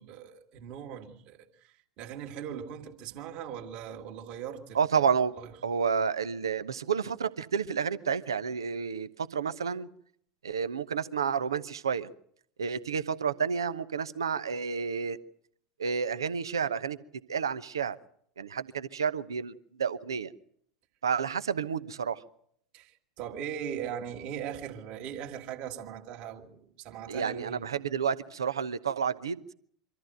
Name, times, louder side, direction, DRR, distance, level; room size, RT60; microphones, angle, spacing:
voice 1, 0.0-5.5 22.7-27.7, right 9 dB, 45° right, 2.3 m, -40 dB
voice 2, 4.7-5.3 5.6-9.9 10.4-12.1 12.6-15.2 15.8-17.0 17.3-18.0 18.4-20.3 21.0-22.2 27.1-29.4, right 6 dB, 75° right, 0.9 m, -30 dB
24.5 x 14.0 x 9.2 m
figure-of-eight pair, 80°, 2 cm